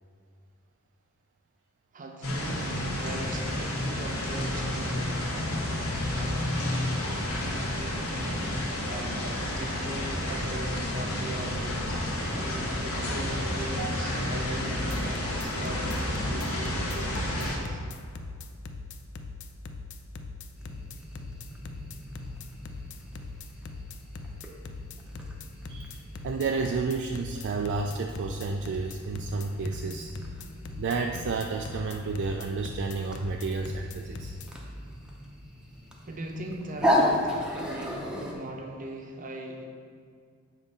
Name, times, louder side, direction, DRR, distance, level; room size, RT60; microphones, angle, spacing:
voice 1, 1.9-17.8 36.0-39.6, right 1 dB, 40° right, 2 dB, 0.7 m, -40 dB
sound 1, 2.2-17.6, left 1 dB, 85° left, 1.2 m, -30 dB
sound 2, 14.7-34.5, left 3 dB, 55° left, 0.5 m, -41 dB
sound 3, 20.6-38.3, left 1 dB, 5° right, 0.7 m, -35 dB
voice 2, 25.7-30.1 30.8-34.3, right 4 dB, 55° right, 3 dB, 0.4 m, -31 dB
7.3 x 4.0 x 5.4 m, 2.1 s
head